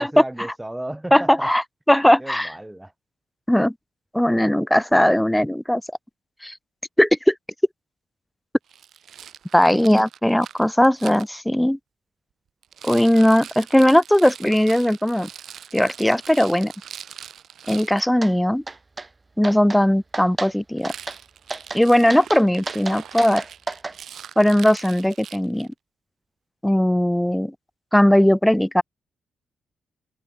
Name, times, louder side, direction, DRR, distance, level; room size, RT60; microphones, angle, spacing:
voice 1, 0.0-1.5 2.2-2.9, right 1 dB, 10° right, 2.0 m, -34 dB
voice 2, 1.1-1.6 1.9-2.5 3.5-3.7 4.1-5.8 6.4-6.5 7.0-7.3 9.5-11.8 12.8-15.3 15.7-16.7 17.7-18.6 19.4-20.9 21.7-23.4 24.4-25.7 26.6-27.5 27.9-28.8, equal, 5° left, 0.3 m, -18 dB
Rattle, 8.7-11.3 12.6-18.0 20.8-25.7, right 9 dB, 70° right, 2.0 m, -41 dB
sound 1, 18.2-18.3 18.7-19.1 19.4-19.8 20.1-20.5 20.8-21.2 21.5-21.8 22.1-24.0, right 3 dB, 30° right, 0.7 m, -32 dB
supercardioid pair, 60°, 0 cm